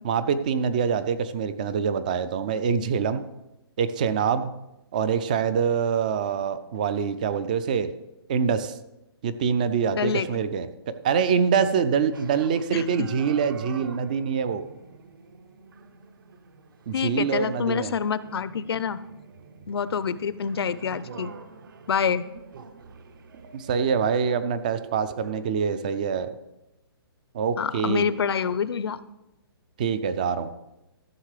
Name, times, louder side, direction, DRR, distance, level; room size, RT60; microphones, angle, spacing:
voice 1, 0.0-3.2 3.8-4.5 4.9-7.9 8.3-8.8 9.2-14.6 16.9-17.9 23.5-26.4 27.3-28.1 29.8-30.5, right 6 dB, 20° right, 13 dB, 0.3 m, -25 dB
voice 2, 9.9-10.3 12.7-13.1 16.9-19.0 19.7-21.3 21.9-22.2 27.6-29.0, left 6 dB, 70° left, 16 dB, 0.6 m, -27 dB
sound 1, 12.1-25.5, right 5 dB, 55° right, 0.9 m, -46 dB
13.5 x 6.4 x 4.9 m, 0.93 s
hypercardioid pair, 170°, 13 cm